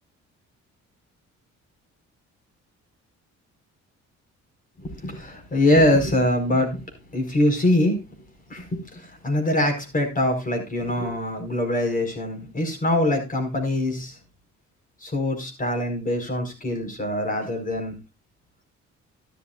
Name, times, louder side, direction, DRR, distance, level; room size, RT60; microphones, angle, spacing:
voice 1, 4.8-6.8 7.1-8.1 8.5-14.2 15.0-17.9, left 1 dB, 30° left, 3 dB, 5.0 m, -23 dB
12.5 x 12.0 x 2.5 m, 0.25 s
cardioid pair, 90°, 30 cm